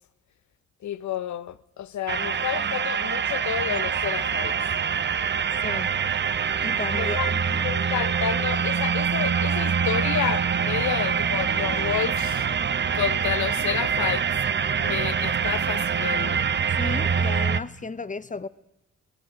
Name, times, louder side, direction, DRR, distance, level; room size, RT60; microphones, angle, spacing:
voice 1, 0.8-4.6 6.9-7.3 7.6-12.5 12.9-14.3 14.8-16.5, left 10 dB, 70° left, 0.9 m, -30 dB
sound 1, 2.1-17.6, right 7 dB, 40° right, 0.8 m, -25 dB
voice 2, 5.6-5.9 6.6-7.7 16.8-18.5, left 4 dB, 25° left, 0.8 m, -34 dB
23.5 x 18.5 x 6.3 m
cardioid pair, 85°, 30 cm